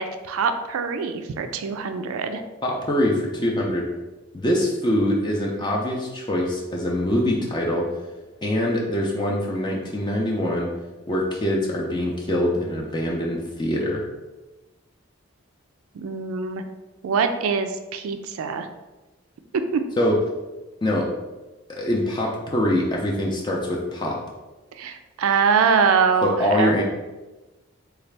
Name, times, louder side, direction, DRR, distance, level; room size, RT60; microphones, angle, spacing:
voice 1, 0.0-2.4 15.9-16.6 17.0-18.7 19.7-19.8 24.8-26.8, right 6 dB, 85° right, 8 dB, 0.4 m, -23 dB
voice 2, 2.6-3.9 4.3-7.9 8.4-10.7 11.1-14.0 20.0-20.2 20.8-21.1 21.7-24.2 26.2-26.8, left 1 dB, 20° left, -2 dB, 0.4 m, -24 dB
4.0 x 2.4 x 3.3 m, 1.1 s
head